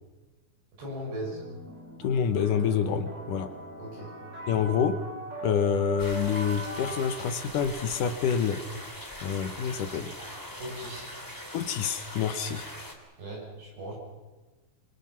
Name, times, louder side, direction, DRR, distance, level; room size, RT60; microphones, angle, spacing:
voice 1, 0.8-1.4 3.8-4.1 10.6-11.1 13.2-13.9, right 1 dB, 60° right, -3 dB, 9.2 m, -38 dB
sound 1, 1.3-8.3, right 2 dB, 25° right, 5.4 m, -40 dB
voice 2, 2.0-3.5 4.5-5.0 5.4-8.6 9.2-10.1 11.5-12.7, left 7 dB, 70° left, 9 dB, 2.0 m, -27 dB
sound 2, 6.0-12.9, left 1 dB, 5° left, 2.0 m, -42 dB
26.5 x 25.0 x 5.9 m, 1.2 s
omnidirectional pair, 5.4 m